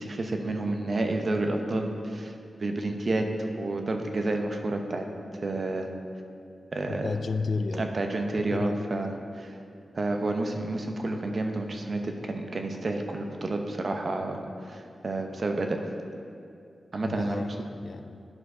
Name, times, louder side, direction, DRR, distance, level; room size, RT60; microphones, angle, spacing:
voice 1, 0.0-2.3 2.6-5.1 5.4-5.9 6.7-7.1 7.8-9.6 9.9-15.9 16.9-17.4, right 2 dB, 50° right, 4 dB, 0.8 m, -30 dB
voice 2, 6.9-8.0 8.5-8.8 17.0-17.5 17.8-18.2, left 4 dB, 55° left, 10 dB, 0.4 m, -32 dB
10.5 x 4.7 x 4.9 m, 2.4 s
cardioid pair, 75°, 0 cm